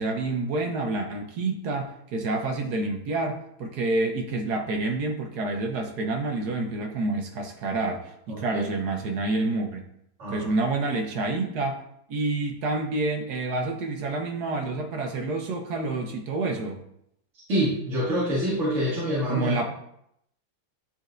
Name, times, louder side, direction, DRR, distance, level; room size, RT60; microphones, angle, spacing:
voice 1, 0.0-9.8 10.3-11.8 12.1-16.8 19.3-19.7, right 2 dB, 60° right, 3 dB, 1.2 m, -28 dB
voice 2, 8.3-8.6 10.2-10.5 17.5-19.6, equal, 40° right, -11 dB, 2.0 m, -26 dB
10.0 x 4.2 x 2.5 m, 0.75 s
omnidirectional pair, 2.2 m